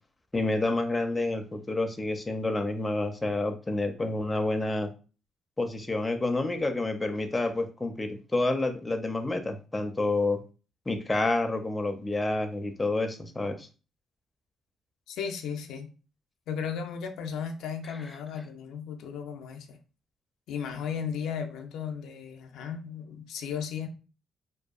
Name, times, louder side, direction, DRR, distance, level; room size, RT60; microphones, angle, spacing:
voice 1, 0.3-4.9 5.6-10.4 10.9-13.7, left 2 dB, 15° left, 0.4 m, -29 dB
voice 2, 15.1-15.9 16.5-19.8 20.5-23.9, left 7 dB, 85° left, 0.3 m, -35 dB
2.7 x 2.3 x 2.3 m
cardioid pair, 90°, 0 cm